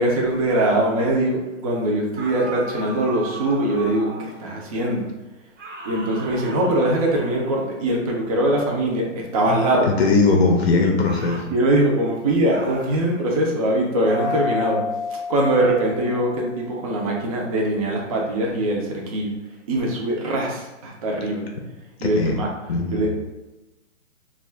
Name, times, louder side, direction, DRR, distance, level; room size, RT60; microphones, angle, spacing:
voice 1, 0.0-5.1 5.8-9.9 11.5-14.8 15.3-19.3 19.7-21.5 22.0-22.5 22.9-23.1, right 1 dB, 30° right, -1 dB, 0.4 m, -22 dB
sound 1, 2.1-4.5 5.6-7.8 9.5-9.9 11.0-11.5 12.5-13.0 14.1-14.5, right 2 dB, 75° right, 0.8 m, -37 dB
voice 2, 9.9-11.5 22.0-22.3 22.7-23.1, left 3 dB, 55° left, 1 dB, 0.5 m, -20 dB
Mallet percussion, 14.1-16.6, left 4 dB, 90° right, 1.1 m, -29 dB
2.3 x 2.3 x 3.2 m, 1.0 s
hypercardioid pair, 135°, 37 cm